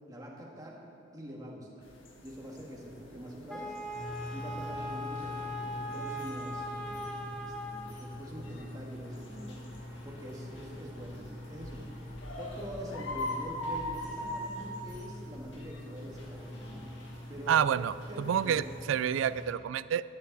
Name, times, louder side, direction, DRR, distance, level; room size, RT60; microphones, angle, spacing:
voice 1, 0.1-0.8 1.1-1.9 2.2-3.7 4.3-9.6 10.0-16.9 17.3-17.6 18.1-18.6, equal, 20° right, -2 dB, 1.8 m, -45 dB
sound 1, 1.8-18.9, left 1 dB, 90° left, 1.6 m, -44 dB
Wind instrument woodwind instrument, 3.5-8.0, left 1 dB, 5° left, 1.1 m, -39 dB
sound 2, 3.9-19.5, left 1 dB, 70° left, 2.1 m, -44 dB
voice 2, 17.5-20.0, right 8 dB, 85° right, 16 dB, 0.3 m, -29 dB
13.5 x 10.0 x 4.1 m, 2.7 s
head